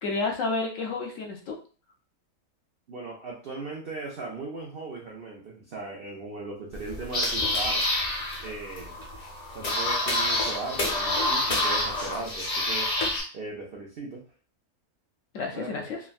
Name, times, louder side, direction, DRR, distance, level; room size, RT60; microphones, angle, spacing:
voice 1, 0.0-1.6 15.3-16.0, left 3 dB, 65° left, 1 dB, 0.9 m, -30 dB
voice 2, 2.9-7.8 8.4-9.0 9.5-12.9 13.3-14.2 15.5-15.9, right 3 dB, 70° right, -1 dB, 0.5 m, -38 dB
sound 1, 6.7-13.2, left 1 dB, 40° left, 0.6 m, -27 dB
3.4 x 2.1 x 2.3 m, 0.38 s
omnidirectional pair, 1.6 m